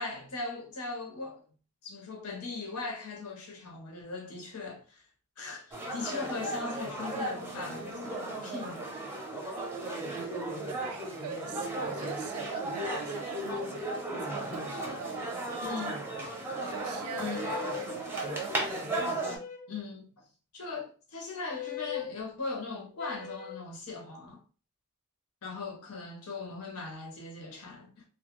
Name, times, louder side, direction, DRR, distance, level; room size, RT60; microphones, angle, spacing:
voice 1, 0.0-1.4 1.8-5.0 5.4-9.1 9.4-9.5 15.6-15.9 17.2-17.5 19.7-20.2 20.5-24.4 25.4-28.0, left 3 dB, 85° left, 0.8 m, -39 dB
sound 1, 5.7-19.4, right 1 dB, 10° right, 0.6 m, -35 dB
voice 2, 9.6-18.7, right 7 dB, 70° right, 0.3 m, -43 dB
sound 2, 17.0-18.0 19.2-19.8 21.5-22.1 23.0-23.6, left 10 dB, 35° left, 0.3 m, -40 dB
2.3 x 2.1 x 2.9 m
head